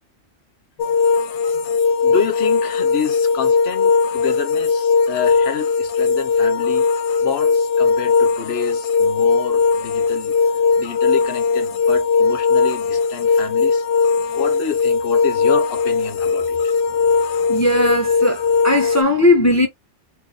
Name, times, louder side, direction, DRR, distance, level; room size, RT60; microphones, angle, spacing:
sound 1, 0.8-19.0, left 5 dB, 85° left, 0.9 m, -18 dB
voice 1, 2.0-6.9 7.2-13.8 14.3-16.6, left 7 dB, 70° left, 1.0 m, -29 dB
voice 2, 17.5-19.7, left 1 dB, 20° left, 0.6 m, -17 dB
2.6 x 2.6 x 3.8 m
omnidirectional pair, 1.2 m